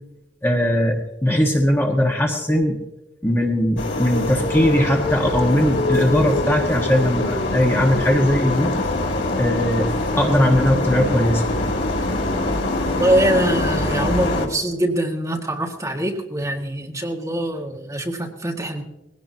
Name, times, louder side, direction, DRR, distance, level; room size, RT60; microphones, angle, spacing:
voice 1, 0.4-2.8 3.2-8.7 9.4-9.8 10.2-11.4, left 1 dB, 15° left, 0 dB, 1.4 m, -19 dB
sound 1, 3.8-14.5, left 2 dB, 85° left, 2.5 m, -23 dB
voice 2, 12.9-18.8, right 1 dB, 15° right, 0 dB, 1.8 m, -23 dB
20.0 x 16.5 x 2.8 m, 0.95 s
head